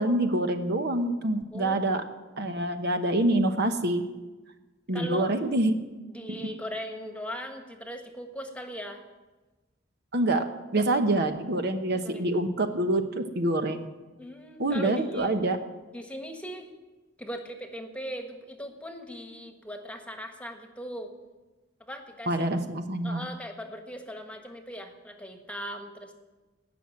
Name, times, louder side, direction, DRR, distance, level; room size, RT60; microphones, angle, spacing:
voice 1, 0.0-2.0 2.4-4.0 4.9-5.8 10.1-10.4 10.7-13.9 14.6-15.6 22.3-23.3, right 1 dB, 55° right, 7 dB, 1.0 m, -26 dB
voice 2, 1.5-1.8 4.9-5.3 6.1-9.0 10.7-10.9 11.9-12.4 14.2-15.3 15.9-16.7 17.2-21.1 21.8-22.5 23.0-26.1, equal, 5° left, 4 dB, 1.5 m, -39 dB
18.0 x 6.2 x 9.7 m, 1.2 s
head